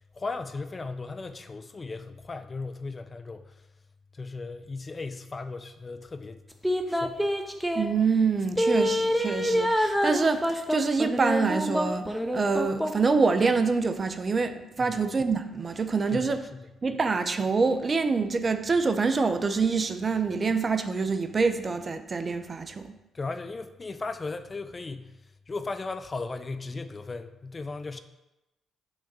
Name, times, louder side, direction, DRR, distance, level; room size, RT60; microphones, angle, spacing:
voice 1, 0.0-3.6 4.1-6.4 6.9-7.2 14.8-15.0 16.1-16.7 23.1-25.1 25.5-28.0, left 3 dB, 35° left, 10 dB, 0.4 m, -36 dB
sound 1, 6.6-7.9 8.6-13.1 13.5-13.6, equal, 5° right, 0.7 m, -26 dB
voice 2, 7.7-16.5 16.8-23.0, right 4 dB, 40° right, 9 dB, 0.5 m, -26 dB
5.1 x 3.5 x 5.5 m, 0.98 s
hypercardioid pair, 45°, 0 cm